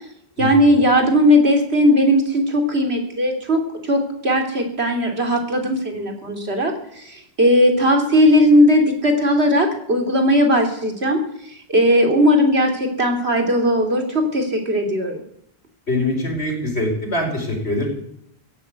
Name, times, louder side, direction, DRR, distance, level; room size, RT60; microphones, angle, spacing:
voice 1, 0.4-11.2 11.5-15.2, equal, 80° right, 3 dB, 3.2 m, -17 dB
voice 2, 15.9-17.9, left 1 dB, 80° left, 0 dB, 5.5 m, -23 dB
16.0 x 10.5 x 8.2 m, 0.71 s
omnidirectional pair, 1.1 m